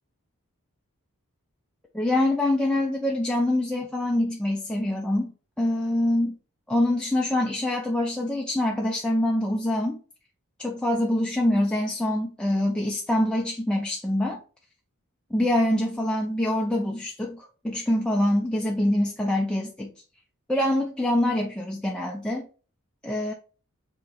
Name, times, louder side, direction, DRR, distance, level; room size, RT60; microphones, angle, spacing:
voice 1, 1.9-5.3 5.6-6.4 6.7-10.0 10.6-14.4 15.3-19.9 20.5-22.5 23.0-23.3, left 1 dB, 5° left, 0.3 m, -25 dB
2.9 x 2.8 x 3.7 m
head